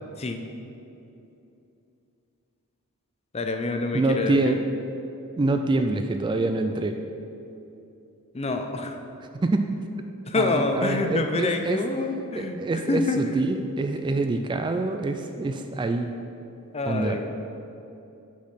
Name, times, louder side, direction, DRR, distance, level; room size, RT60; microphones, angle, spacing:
voice 1, 3.3-4.6 8.3-9.0 10.3-12.6 12.9-13.2 16.7-17.2, left 3 dB, 30° left, 5 dB, 0.6 m, -27 dB
voice 2, 3.9-4.6 5.4-7.0 9.3-9.7 10.3-11.8 12.3-16.1 16.9-17.2, right 2 dB, 20° right, 6 dB, 0.3 m, -25 dB
6.3 x 6.1 x 5.7 m, 2.8 s
head